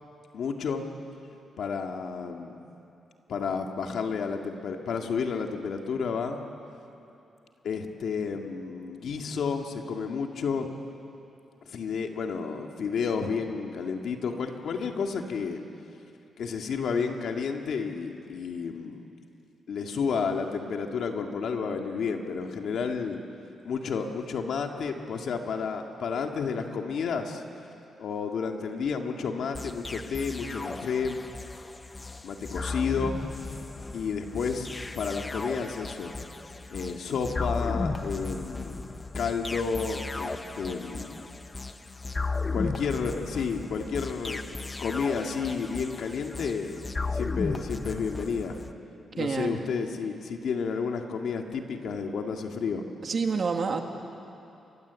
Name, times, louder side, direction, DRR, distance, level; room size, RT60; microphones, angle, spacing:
voice 1, 0.3-0.9 1.6-2.6 3.3-6.4 7.6-10.7 11.7-15.6 16.4-19.0 19.7-23.2 23.6-27.4 28.0-31.2 32.2-33.2 33.9-36.1 36.7-38.9 39.1-41.2 42.5-44.5 44.8-48.6 49.1-52.8, left 5 dB, 60° left, 3 dB, 2.0 m, -31 dB
sound 1, 29.5-48.7, left 3 dB, 15° left, 0.8 m, -35 dB
voice 2, 49.2-49.7 53.0-53.8, right 5 dB, 40° right, 4 dB, 1.8 m, -28 dB
29.0 x 23.0 x 8.3 m, 2.8 s
wide cardioid pair, 175°, 0 cm